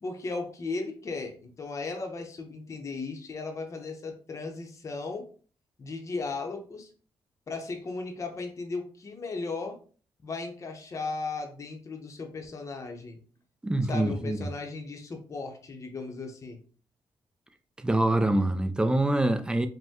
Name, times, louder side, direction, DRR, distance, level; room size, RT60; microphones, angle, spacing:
voice 1, 0.0-5.3 5.8-6.9 7.5-9.8 10.2-13.2 13.8-16.6, left 3 dB, 35° left, 0.7 m, -36 dB
voice 2, 13.6-14.4 17.8-19.7, right 1 dB, 10° right, 0.4 m, -25 dB
5.2 x 2.1 x 3.5 m
wide cardioid pair, 150°, 9 cm